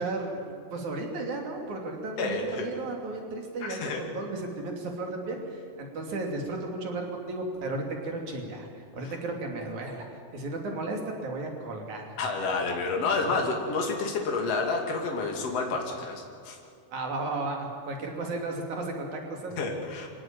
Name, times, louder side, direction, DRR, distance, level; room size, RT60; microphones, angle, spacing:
voice 1, 0.0-8.7 8.9-10.0 10.3-12.1 13.3-13.4 16.9-19.5, right 2 dB, 75° right, 2 dB, 4.2 m, -34 dB
voice 2, 2.2-2.6 3.6-4.0 9.0-9.1 12.2-16.6 19.6-20.1, left 3 dB, 55° left, 1 dB, 3.6 m, -29 dB
25.0 x 17.0 x 9.0 m, 2.4 s
omnidirectional pair, 3.4 m